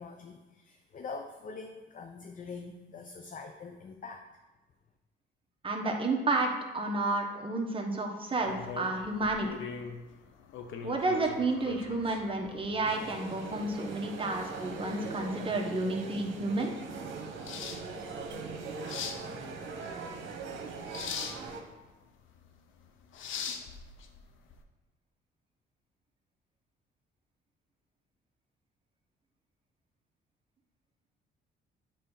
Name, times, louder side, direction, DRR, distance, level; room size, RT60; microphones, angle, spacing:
voice 1, 0.0-4.2, left 4 dB, 40° left, 5 dB, 0.6 m, -44 dB
voice 2, 5.6-9.5 10.8-16.7, right 2 dB, 25° right, 0 dB, 1.2 m, -31 dB
sound 1, 8.4-24.6, left 6 dB, 80° left, 0.7 m, -43 dB
sound 2, 12.8-21.6, right 4 dB, 70° right, 1.2 m, -41 dB
7.6 x 3.4 x 5.5 m, 1.1 s
cardioid pair, 90°, 20 cm